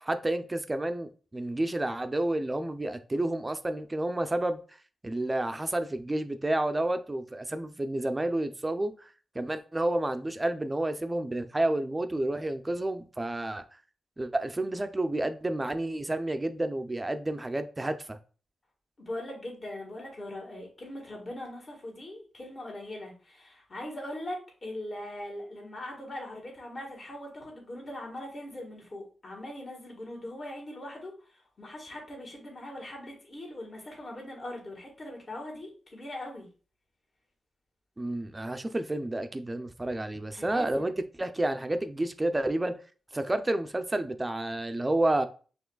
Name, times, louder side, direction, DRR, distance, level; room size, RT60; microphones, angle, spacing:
voice 1, 0.0-4.6 5.0-8.9 9.3-13.6 14.2-18.2 38.0-40.9 41.2-42.7 43.1-45.3, right 1 dB, 20° right, 0.5 m, -30 dB
voice 2, 19.0-36.5 40.3-40.9, left 1 dB, 45° left, 1.6 m, -41 dB
6.1 x 3.0 x 2.3 m
cardioid pair, 65°, 0 cm